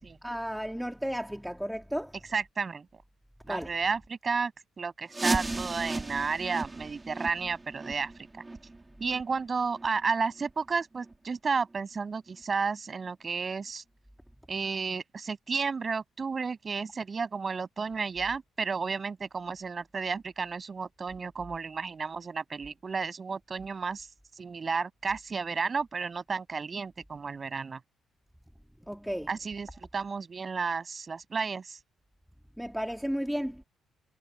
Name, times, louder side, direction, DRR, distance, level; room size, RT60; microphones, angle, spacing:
voice 1, 0.2-2.1 3.4-3.8 28.8-29.3 32.6-33.6, equal, ahead, 2.4 m, -33 dB
voice 2, 2.3-3.0 3.5-4.5 4.8-8.1 9.0-13.8 14.5-24.1 24.4-27.8 29.3-29.7 29.9-31.8, right 5 dB, 35° right, 7.6 m, -32 dB
sound 1, 5.1-10.7 11.0-11.1 11.7-11.8 12.4-12.5 13.0-13.1, right 2 dB, 20° right, 3.5 m, -36 dB
cardioid pair, 90°, 0 cm